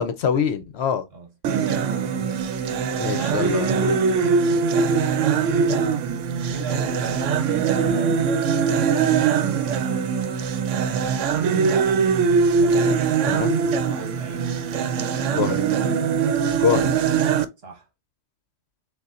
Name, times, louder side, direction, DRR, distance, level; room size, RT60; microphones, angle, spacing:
voice 1, 0.0-1.0 3.0-4.0 13.3-13.5 15.3-15.6 16.6-16.9, left 7 dB, 65° left, 0.8 m, -24 dB
voice 2, 1.1-2.3 6.5-10.5 11.3-12.1 12.6-13.2 13.9-14.6 15.1-15.8 17.6-17.9, right 2 dB, 55° right, 1.2 m, -40 dB
sound 1, 1.4-17.5, right 6 dB, 80° right, 0.9 m, -22 dB
6.6 x 2.4 x 2.4 m
omnidirectional pair, 1.3 m